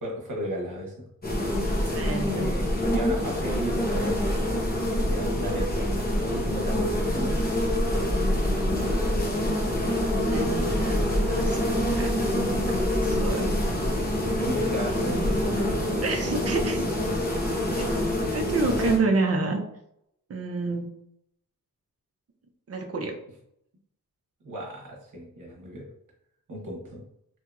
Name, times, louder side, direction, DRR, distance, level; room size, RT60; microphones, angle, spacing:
voice 1, 0.0-1.1 1.7-2.0 2.2-2.6 2.9-4.2 5.0-5.9 6.2-7.6 14.4-16.0 24.4-25.9 26.5-27.0, right 1 dB, 60° right, -2 dB, 1.1 m, -34 dB
sound 1, 1.2-19.0, left 1 dB, 25° left, 0.8 m, -26 dB
voice 2, 1.9-2.5 10.2-12.3 12.7-13.5 15.1-15.4 16.0-16.9 18.3-19.6 20.3-20.9 22.7-23.2, right 3 dB, 45° right, 3 dB, 0.6 m, -29 dB
2.8 x 2.7 x 2.3 m, 0.76 s
wide cardioid pair, 75°, 34 cm